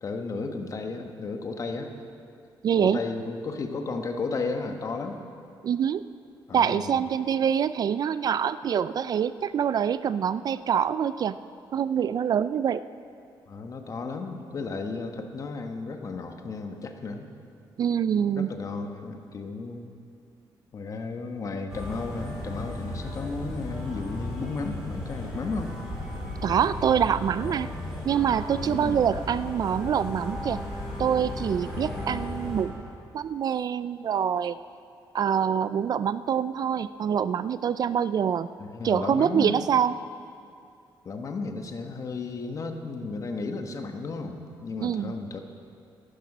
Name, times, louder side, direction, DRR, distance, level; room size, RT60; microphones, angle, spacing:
voice 1, 0.0-1.9 2.8-5.2 6.5-7.0 13.5-17.3 18.4-19.9 20.7-25.7 28.5-29.0 31.9-32.2 38.6-39.8 41.0-45.4, left 3 dB, 40° left, 5 dB, 1.2 m, -34 dB
voice 2, 2.6-3.0 5.6-6.0 6.5-11.4 11.7-12.8 17.8-18.5 26.4-27.7 28.1-30.6 31.0-34.6 35.1-38.5 38.8-39.9 44.8-45.1, right 8 dB, 50° right, 15 dB, 0.3 m, -25 dB
sound 1, 21.7-32.6, left 1 dB, 5° right, 4.0 m, -35 dB
14.0 x 12.0 x 6.0 m, 2.5 s
cardioid pair, 130°, 9 cm